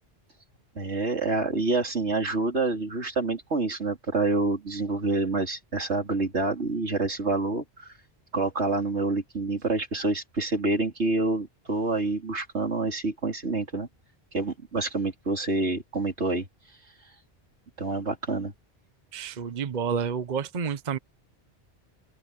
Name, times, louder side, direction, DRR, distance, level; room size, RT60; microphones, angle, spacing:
voice 1, 0.8-7.9 8.3-13.9 14.3-16.5 17.8-18.5, right 2 dB, 85° right, 3.7 m, -27 dB
voice 2, 19.1-21.0, right 6 dB, 45° right, 0.9 m, -29 dB
open air
omnidirectional pair, 1.1 m